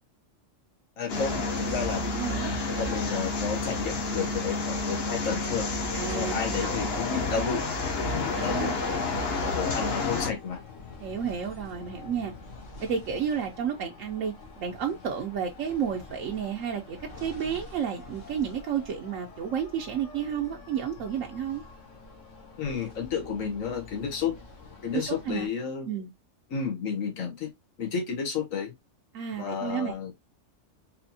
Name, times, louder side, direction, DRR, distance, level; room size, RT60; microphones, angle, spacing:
voice 1, 1.0-2.2 2.8-5.7 6.1-7.6 8.0-8.7 9.3-10.6 22.6-24.3 24.8-25.9 26.5-27.5 27.8-28.7 29.3-30.1, left 6 dB, 90° left, 1.4 m, -32 dB
sound 1, 1.1-10.3, left 3 dB, 55° left, 1.1 m, -30 dB
voice 2, 2.2-2.5 5.9-7.2 8.2-9.5 11.0-12.3 12.8-21.6 24.9-25.5 25.9-26.1 29.1-30.0, right 8 dB, 80° right, 1.0 m, -32 dB
sound 2, 10.0-25.5, left 3 dB, 70° left, 1.5 m, -47 dB
4.2 x 2.8 x 2.7 m
omnidirectional pair, 1.3 m